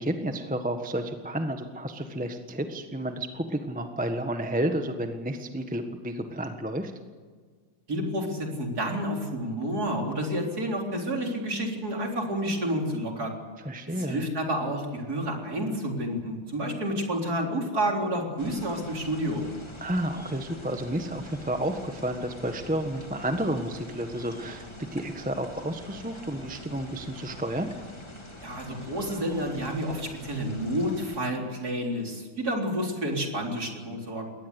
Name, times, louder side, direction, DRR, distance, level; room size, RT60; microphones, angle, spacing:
voice 1, 0.0-6.9 13.6-14.2 19.8-24.7 24.9-27.7, right 1 dB, 5° right, 6 dB, 1.1 m, -31 dB
voice 2, 7.9-13.4 13.9-19.4 28.4-34.3, equal, 45° right, 1 dB, 4.3 m, -30 dB
sound 1, 18.4-31.2, left 1 dB, 15° left, 1.9 m, -45 dB
22.5 x 19.0 x 8.3 m, 1.6 s
omnidirectional pair, 2.3 m